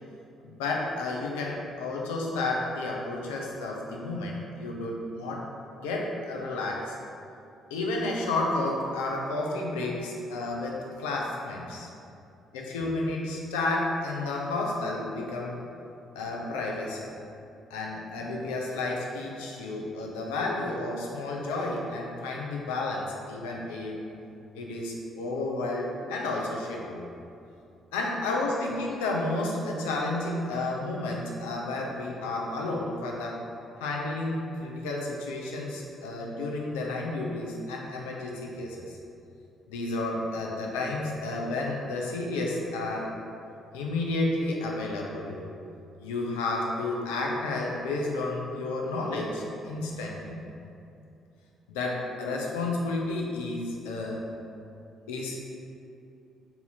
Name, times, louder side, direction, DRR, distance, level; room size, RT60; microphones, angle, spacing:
voice 1, 0.4-5.4 5.7-7.0 7.7-11.9 12.5-15.6 16.1-17.0 17.7-24.0 24.6-27.1 27.9-33.4 33.8-39.0 39.7-43.1 43.7-45.4 46.0-50.4 51.7-54.2 55.1-55.6, left 2 dB, 75° left, -2 dB, 0.4 m, -31 dB
2.7 x 2.7 x 3.9 m, 2.6 s
figure-of-eight pair, 45°, 0 cm